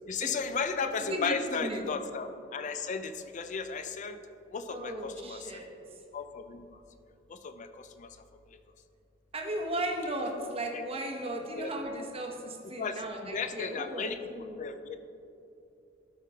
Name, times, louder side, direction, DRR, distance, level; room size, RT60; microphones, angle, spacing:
voice 1, 0.1-4.2 4.5-5.6 6.1-6.7 7.3-8.1 10.7-10.8 11.6-11.7 12.0-12.1 12.8-14.2 14.6-15.0, left 5 dB, 40° left, 9 dB, 0.4 m, -35 dB
voice 2, 0.8-1.8 4.7-5.7 9.3-14.6, right 1 dB, 30° right, 1 dB, 0.9 m, -36 dB
12.0 x 4.8 x 3.4 m, 2.7 s
head